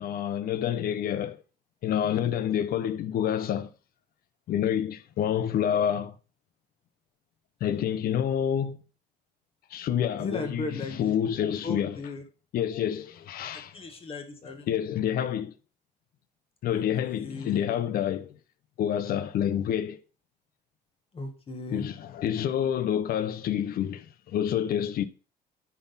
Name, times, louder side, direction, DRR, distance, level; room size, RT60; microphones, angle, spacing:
voice 1, 0.0-1.4 1.8-3.7 4.5-6.2 7.6-8.8 9.7-12.0 12.5-13.8 14.7-15.5 16.6-18.4 18.8-20.0 21.7-25.0, left 9 dB, 65° left, 0.7 m, -28 dB
voice 2, 10.2-11.1 11.6-12.2 13.5-14.7 16.7-17.6 21.1-21.9, left 3 dB, 35° left, 1.6 m, -37 dB
9.4 x 4.1 x 4.0 m
cardioid pair, 110°, 17 cm